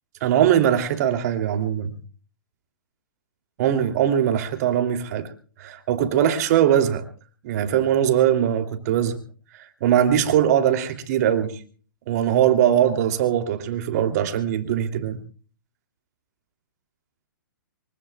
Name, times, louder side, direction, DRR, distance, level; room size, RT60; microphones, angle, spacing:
voice 1, 0.2-1.9 3.6-5.3 5.6-7.0 7.4-9.2 9.8-11.6 12.1-15.2, right 10 dB, 50° right, 2.9 m, -21 dB
24.0 x 23.5 x 2.3 m
hypercardioid pair, 125°, 11 cm